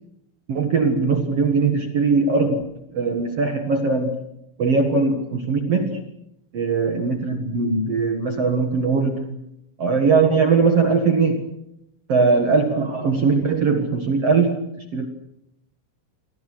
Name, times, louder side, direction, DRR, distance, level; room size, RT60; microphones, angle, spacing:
voice 1, 0.5-4.2 4.6-6.0 6.5-9.4 9.8-11.5 12.1-14.6 14.9-15.0, right 4 dB, 80° right, 5 dB, 1.3 m, -20 dB
30.0 x 24.0 x 6.4 m, 0.82 s
omnidirectional pair, 5.7 m